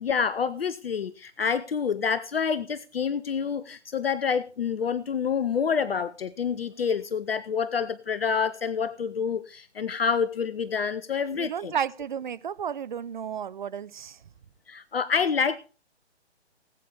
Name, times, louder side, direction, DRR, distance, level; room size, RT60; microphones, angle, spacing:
voice 1, 0.0-11.7 14.7-15.6, left 6 dB, 55° left, 0.7 m, -27 dB
voice 2, 11.3-14.2, right 8 dB, 45° right, 0.6 m, -32 dB
19.5 x 8.5 x 3.5 m
figure-of-eight pair, 140°, 34 cm